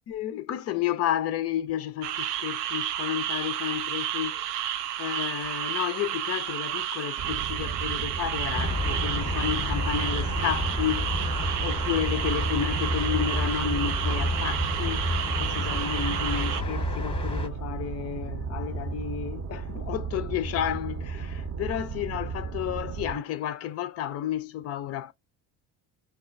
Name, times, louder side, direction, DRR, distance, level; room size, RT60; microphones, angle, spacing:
voice 1, 0.0-11.1 11.6-15.0 15.4-25.1, left 10 dB, 35° left, 0.4 m, -32 dB
sound 1, 2.0-16.6, right 11 dB, 70° right, 0.6 m, -31 dB
sound 2, 7.2-23.2, right 5 dB, 30° right, 0.6 m, -35 dB
sound 3, 8.5-17.5, left 1 dB, 10° left, 0.8 m, -30 dB
5.9 x 2.1 x 2.3 m
figure-of-eight pair, 55°, 50 cm